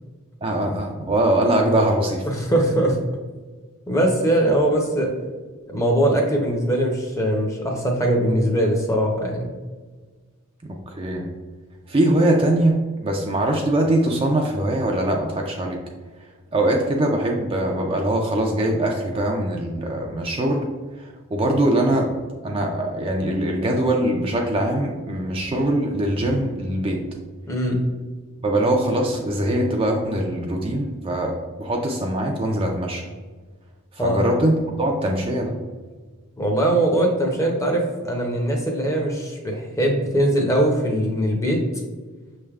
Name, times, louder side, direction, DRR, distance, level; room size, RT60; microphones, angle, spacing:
voice 1, 0.4-2.2 10.7-11.3 11.9-15.8 16.5-20.7 21.0-22.2 22.4-27.0 28.4-33.0 34.0-35.6, right 1 dB, 25° right, 1 dB, 0.3 m, -22 dB
voice 2, 2.3-3.0 3.9-5.1 5.7-9.5 27.5-27.8 34.0-34.2 36.4-41.6, right 1 dB, 15° left, 1 dB, 0.6 m, -21 dB
6.2 x 3.3 x 2.3 m, 1.4 s
head